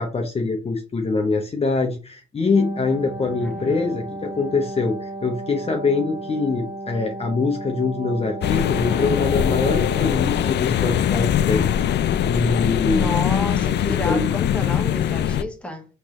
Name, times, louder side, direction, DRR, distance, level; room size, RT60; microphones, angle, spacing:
voice 1, 0.0-11.7 12.0-13.1 13.8-14.3, left 3 dB, 30° left, 0.8 m, -24 dB
Wind instrument woodwind instrument, 2.4-10.4, right 1 dB, 15° right, 0.9 m, -34 dB
Guitar, 2.9-6.4 7.9-8.3 8.6-11.5, right 1 dB, 90° right, 1.3 m, -42 dB
voice 2, 3.4-3.9 12.9-15.9, left 1 dB, 5° left, 1.3 m, -31 dB
sound 1, 8.4-15.4, left 10 dB, 60° left, 0.4 m, -22 dB
4.6 x 3.1 x 3.7 m
cardioid pair, 90°, 20 cm